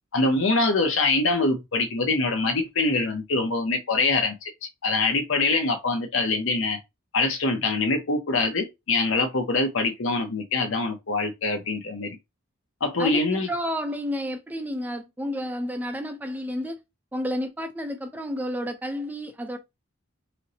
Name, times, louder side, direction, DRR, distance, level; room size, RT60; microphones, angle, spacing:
voice 1, 0.1-4.3 4.8-6.8 7.1-12.2 12.8-13.5, left 3 dB, 65° left, 0.7 m, -24 dB
voice 2, 13.0-16.8 17.1-19.6, equal, 10° right, 0.4 m, -31 dB
4.1 x 2.0 x 2.7 m
head